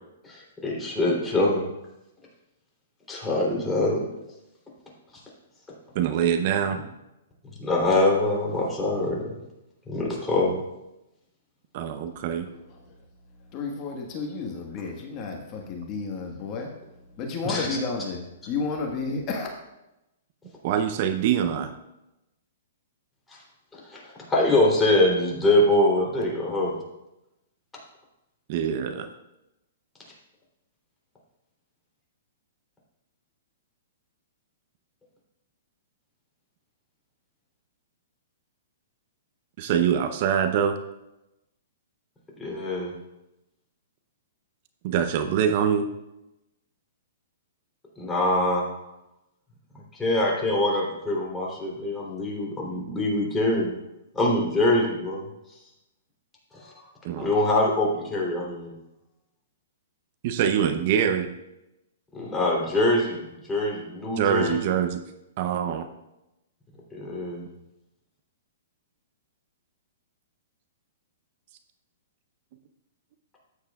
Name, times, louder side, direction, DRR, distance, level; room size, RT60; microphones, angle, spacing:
voice 1, 0.2-1.6 3.1-4.0 7.6-9.2 9.9-10.5 17.4-17.7 23.7-24.0 24.3-26.8 42.4-42.9 48.0-48.7 49.9-53.7 54.1-55.3 56.5-56.7 57.2-58.7 62.1-64.6 66.9-67.4, left 1 dB, 10° left, -3 dB, 3.3 m, -24 dB
voice 2, 5.9-6.8 11.7-12.5 20.6-21.7 28.5-29.1 39.6-40.8 44.8-45.9 57.0-57.3 60.2-61.3 64.2-65.0 65.4-65.9, right 8 dB, 50° right, 8 dB, 0.8 m, -24 dB
voice 3, 12.1-12.9 13.5-19.5, left 4 dB, 35° left, 1 dB, 1.5 m, -32 dB
13.0 x 9.2 x 2.4 m, 0.92 s
hypercardioid pair, 130°, 0 cm